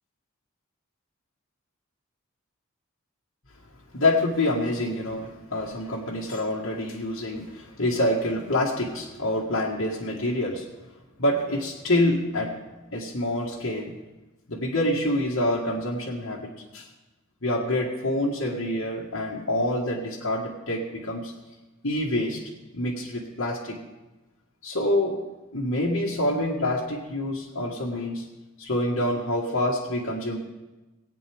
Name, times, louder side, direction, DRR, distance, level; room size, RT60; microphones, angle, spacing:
voice 1, 3.9-10.7 11.2-12.5 12.9-13.9 14.5-16.9 17.4-21.3 21.8-22.4 22.7-23.8 24.6-25.2 25.5-28.2 28.6-30.4, left 1 dB, 70° left, -4 dB, 1.5 m, -26 dB
19.0 x 8.9 x 3.5 m, 1.1 s
head